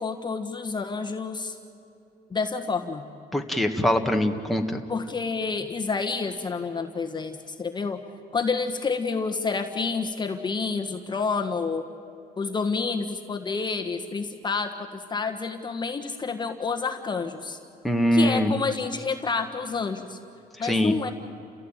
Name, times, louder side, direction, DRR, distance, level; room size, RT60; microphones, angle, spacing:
voice 1, 0.0-1.6 2.3-3.0 4.9-8.0 8.3-11.8 12.4-17.6 18.1-20.2 20.6-21.1, left 4 dB, 25° left, 5 dB, 1.5 m, -29 dB
voice 2, 3.3-4.8 17.8-18.5 20.6-20.9, equal, ahead, 2 dB, 1.8 m, -23 dB
30.0 x 16.5 x 9.0 m, 2.7 s
cardioid pair, 110°, 17 cm